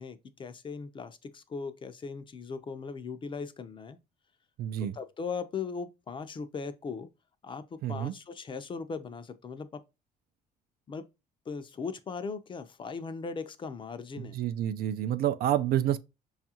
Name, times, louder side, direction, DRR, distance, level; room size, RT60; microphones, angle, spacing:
voice 1, 0.0-4.0 4.8-7.1 7.4-9.7 10.9-11.0 11.5-14.4, left 5 dB, 30° left, 0.5 m, -38 dB
voice 2, 4.6-5.0 7.8-8.1 14.3-16.0, right 11 dB, 65° right, 0.4 m, -28 dB
5.2 x 2.4 x 2.7 m
cardioid pair, 110°, 17 cm